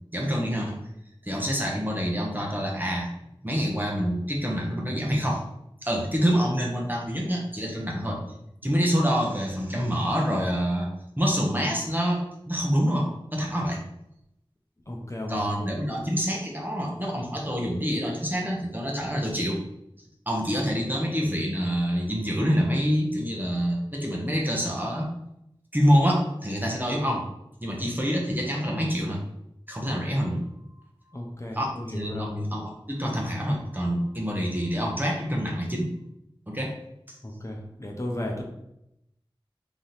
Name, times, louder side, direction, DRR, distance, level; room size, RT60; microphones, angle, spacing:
voice 1, 0.1-0.8 1.2-3.1 3.4-5.4 5.8-8.2 8.6-10.9 11.2-13.8 15.3-19.6 20.3-25.1 25.7-27.3 27.6-29.2 29.7-30.4 31.5-35.9 36.5-36.7, equal, 20° right, -1 dB, 1.0 m, -26 dB
voice 2, 14.9-15.7 31.1-32.3 37.2-38.4, left 1 dB, 35° left, 0 dB, 0.8 m, -34 dB
3.6 x 3.0 x 4.0 m, 0.82 s
wide cardioid pair, 45°, 9 cm